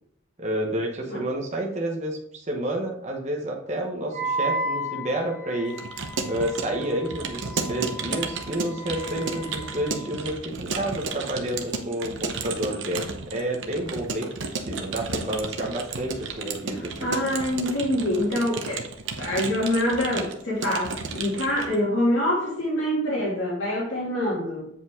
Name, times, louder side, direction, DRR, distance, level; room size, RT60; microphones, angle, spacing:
voice 1, 0.4-5.8 6.2-16.9, right 1 dB, 35° right, 0 dB, 1.0 m, -30 dB
Wind instrument woodwind instrument, 4.1-10.2, right 1 dB, 20° left, 1.8 m, -34 dB
Keyboard (musical) / Computer keyboard, 5.7-21.8, right 4 dB, 70° right, 0.9 m, -33 dB
voice 2, 16.7-18.9 19.2-24.7, left 1 dB, 75° left, -4 dB, 2.6 m, -25 dB
8.2 x 5.1 x 3.7 m, 0.70 s
head